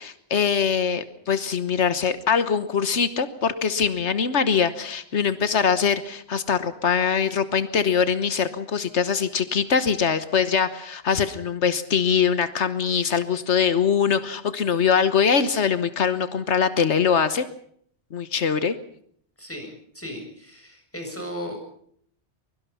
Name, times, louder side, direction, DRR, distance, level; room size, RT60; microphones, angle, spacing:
voice 1, 0.0-17.4 18.1-18.8, left 6 dB, 85° left, 12 dB, 1.5 m, -22 dB
voice 2, 19.4-21.6, equal, 10° left, 3 dB, 7.5 m, -36 dB
23.5 x 23.0 x 5.7 m, 0.63 s
omnidirectional pair, 1.1 m